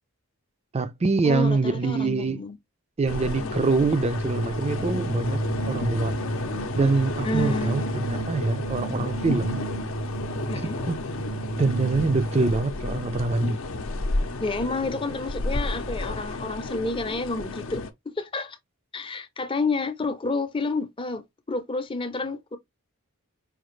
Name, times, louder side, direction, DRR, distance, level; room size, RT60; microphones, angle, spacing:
voice 1, 0.7-2.4 3.0-6.2 6.8-9.6 10.5-11.0 11.6-13.6, right 3 dB, 30° right, 0.4 m, -25 dB
voice 2, 1.2-2.6 7.2-7.7 10.5-10.8 14.4-17.8 18.2-18.6 18.9-22.6, left 3 dB, 25° left, 0.6 m, -29 dB
sound 1, 3.1-17.9, left 2 dB, 65° left, 0.6 m, -32 dB
sound 2, 4.1-12.7, right 2 dB, 90° right, 0.8 m, -32 dB
5.0 x 2.4 x 3.1 m
head